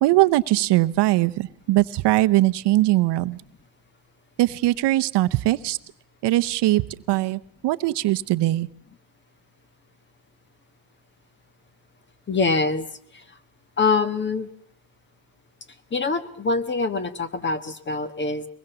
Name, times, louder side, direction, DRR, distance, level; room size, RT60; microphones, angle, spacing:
voice 1, 0.0-3.4 4.4-5.8 6.2-6.8 7.1-8.7, right 17 dB, 60° right, 12 dB, 0.8 m, -21 dB
voice 2, 12.3-12.9 13.8-14.5 15.9-18.5, left 4 dB, 25° left, 12 dB, 1.4 m, -24 dB
23.0 x 20.0 x 6.9 m, 0.68 s
cardioid pair, 130°, 47 cm